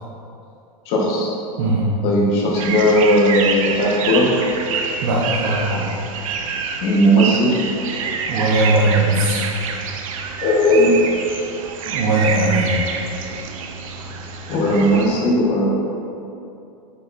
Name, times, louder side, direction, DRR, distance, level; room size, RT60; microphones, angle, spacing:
voice 1, 0.8-1.3 2.0-4.3 6.8-7.5 10.4-10.9 14.5-15.7, equal, 35° left, -3 dB, 1.4 m, -17 dB
voice 2, 1.6-1.9 5.0-5.9 8.3-9.5 11.9-12.7, right 2 dB, 45° right, -5 dB, 1.2 m, -19 dB
sound 1, 2.5-15.1, right 5 dB, 65° right, 0.9 m, -27 dB
8.2 x 5.5 x 4.3 m, 2.6 s
supercardioid pair, 180°, 18 cm